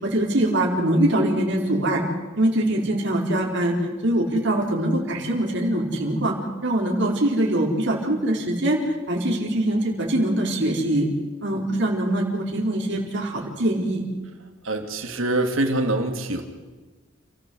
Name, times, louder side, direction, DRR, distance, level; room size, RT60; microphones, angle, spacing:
voice 1, 0.0-2.0 2.4-3.7 4.0-6.4 6.6-8.8 9.1-11.1 11.4-14.0, right 1 dB, 60° right, -1 dB, 4.7 m, -23 dB
voice 2, 14.6-16.4, right 2 dB, 75° right, 4 dB, 3.0 m, -24 dB
29.0 x 15.0 x 8.0 m, 1.3 s
head